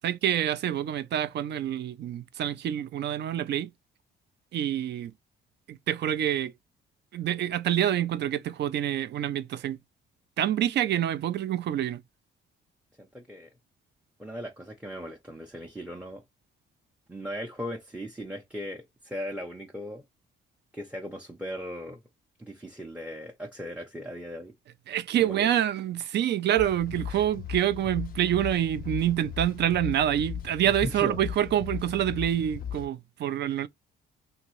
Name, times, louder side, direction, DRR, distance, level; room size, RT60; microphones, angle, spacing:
voice 1, 0.0-3.7 4.5-5.1 5.7-6.5 7.1-9.8 10.4-12.0 24.9-33.7, right 11 dB, 60° right, 0.4 m, -27 dB
voice 2, 13.0-13.5 14.2-16.2 17.1-20.0 20.7-22.0 22.4-24.5 25.2-25.5 26.2-26.3 27.1-27.2 30.8-31.2, equal, 5° right, 0.6 m, -38 dB
sound 1, 26.6-32.9, left 9 dB, 45° left, 0.4 m, -37 dB
2.9 x 2.7 x 2.9 m
cardioid pair, 90°, 20 cm